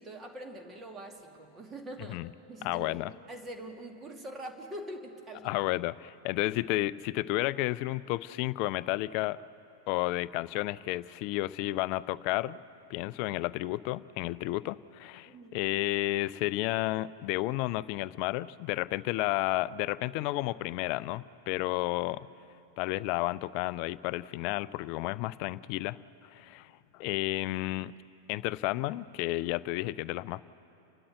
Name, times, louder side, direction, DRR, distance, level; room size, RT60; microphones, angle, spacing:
voice 1, 0.0-2.2 2.5-5.5 15.3-15.6, right 1 dB, 20° right, 4 dB, 2.2 m, -44 dB
voice 2, 2.6-3.1 5.4-9.4 9.9-12.6 12.9-22.3 22.8-26.0 26.3-27.9 28.3-30.4, left 17 dB, 45° left, 19 dB, 0.4 m, -32 dB
30.0 x 12.5 x 7.9 m, 2.9 s
figure-of-eight pair, 90°, 0 cm